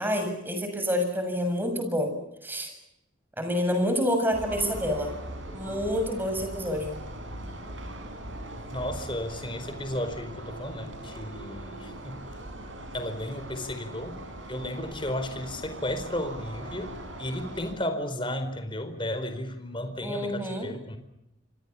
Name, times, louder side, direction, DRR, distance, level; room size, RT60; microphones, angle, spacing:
voice 1, 0.0-2.1 2.4-2.7 3.4-5.1 5.5-7.0 20.0-20.7, equal, 10° right, 6 dB, 7.1 m, -28 dB
sound 1, 4.3-17.7, right 1 dB, 75° right, 7.6 m, -40 dB
voice 2, 8.7-12.2 12.9-14.2 14.5-16.9 17.2-21.0, left 1 dB, 25° left, 8 dB, 4.6 m, -33 dB
28.5 x 24.5 x 7.2 m, 0.86 s
head